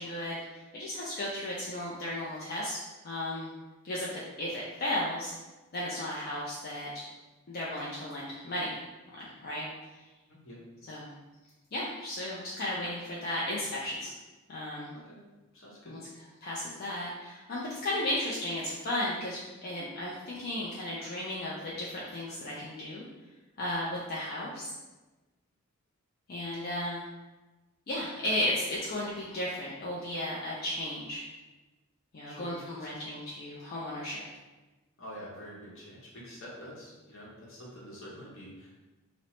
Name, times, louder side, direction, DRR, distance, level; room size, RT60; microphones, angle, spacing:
voice 1, 0.0-2.8 3.0-3.5 3.8-5.3 5.7-7.1 7.5-8.8 9.4-9.7 10.9-11.1 11.7-14.1 14.5-14.9 15.9-16.0 16.4-23.1 23.6-24.7 26.3-27.0 27.9-31.3 32.1-34.2, left 1 dB, 45° left, -6 dB, 0.4 m, -34 dB
voice 2, 10.3-10.6 14.9-15.2 15.5-16.0 32.3-33.1 35.0-38.8, equal, 65° left, -6 dB, 0.9 m, -47 dB
2.8 x 2.0 x 3.0 m, 1.1 s
head